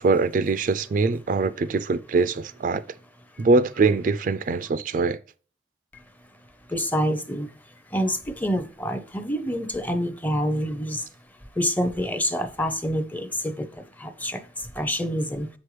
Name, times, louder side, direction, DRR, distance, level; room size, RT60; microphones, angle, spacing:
voice 1, 0.0-2.8 3.4-5.2, right 3 dB, 45° right, 0.3 m, -23 dB
voice 2, 6.7-7.5 7.9-11.1 11.6-15.5, equal, 10° left, 0.6 m, -27 dB
7.7 x 6.2 x 3.2 m
head